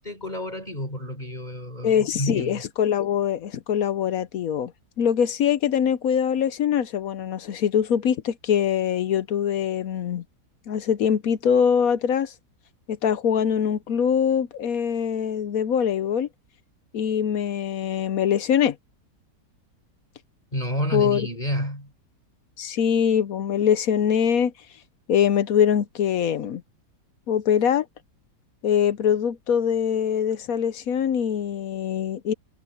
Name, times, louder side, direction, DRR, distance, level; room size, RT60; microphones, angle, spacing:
voice 1, 0.0-2.6 20.5-21.9, equal, 25° left, 4.2 m, -30 dB
voice 2, 1.8-4.7 5.0-10.2 10.7-12.3 12.9-16.3 16.9-18.8 20.9-21.3 22.6-24.5 25.1-26.6 27.3-27.9 28.6-32.3, left 8 dB, 65° left, 1.1 m, -23 dB
omnidirectional pair, 1.8 m